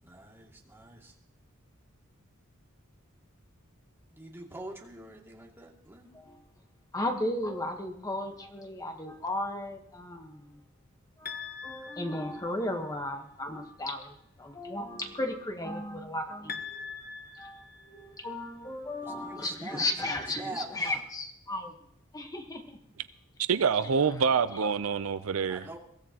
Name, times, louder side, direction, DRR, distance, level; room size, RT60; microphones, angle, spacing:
voice 1, 0.0-1.1 4.1-6.1 19.0-20.9 23.6-23.9 25.5-25.8, right 2 dB, 10° right, -1 dB, 2.4 m, -44 dB
voice 2, 6.9-10.5 11.2-16.9 17.4-21.7 22.1-22.8 24.6-24.7, left 1 dB, 15° left, 4 dB, 1.2 m, -35 dB
sound 1, 11.3-12.9 16.5-18.5, left 5 dB, 45° left, 1.0 m, -43 dB
voice 3, 23.5-25.6, right 6 dB, 75° right, 13 dB, 0.5 m, -26 dB
23.0 x 16.0 x 2.9 m, 0.71 s
head